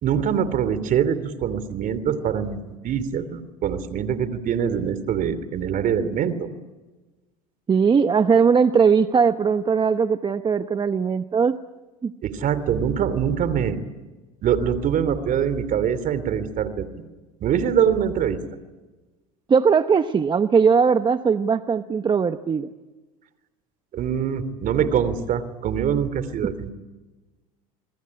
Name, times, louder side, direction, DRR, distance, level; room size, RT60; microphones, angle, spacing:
voice 1, 0.0-6.5 12.2-13.8 14.4-16.9 17.4-18.4 23.9-26.7, right 8 dB, 50° right, 14 dB, 3.0 m, -24 dB
voice 2, 7.7-11.6 12.0-12.1 19.5-22.7, right 6 dB, 25° right, 10 dB, 1.0 m, -19 dB
28.0 x 21.5 x 9.7 m, 1.2 s
supercardioid pair, 100°, 19 cm